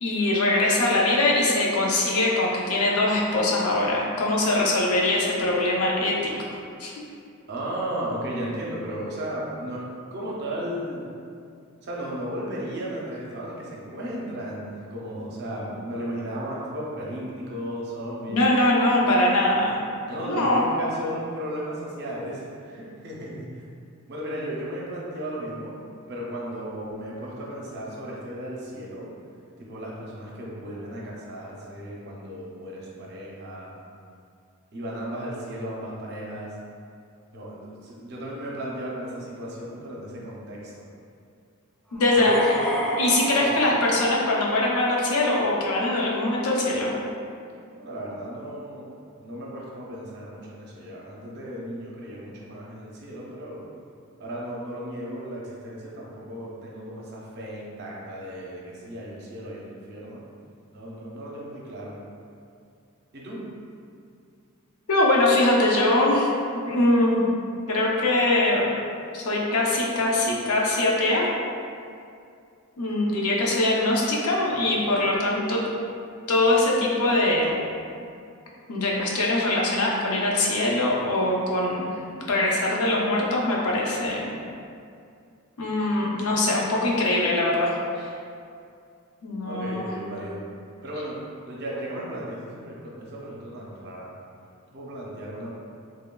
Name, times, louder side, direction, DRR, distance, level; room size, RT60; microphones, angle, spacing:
voice 1, 0.0-6.3 6.8-7.0 18.3-19.8 20.2-20.6 41.9-42.4 43.0-47.0 64.9-67.4 67.7-68.7 69.1-71.3 72.8-75.7 76.3-77.5 78.7-81.9 82.3-84.3 85.6-88.1 89.2-89.9, left 2 dB, 90° left, -3 dB, 0.5 m, -22 dB
voice 2, 7.5-9.9 10.1-11.0 11.8-18.4 20.1-23.6 24.1-25.8 26.1-29.1 29.6-33.7 34.7-36.5 37.3-40.8 42.2-42.6 43.3-43.5 47.7-48.9 49.2-53.6 54.2-60.2 60.7-62.0 63.1-63.4 89.5-90.4 90.8-94.1 94.7-95.5, equal, 50° right, -4 dB, 0.5 m, -35 dB
sound 1, 41.9-45.0, right 1 dB, 5° left, 0.4 m, -30 dB
3.1 x 2.2 x 2.2 m, 2.4 s
head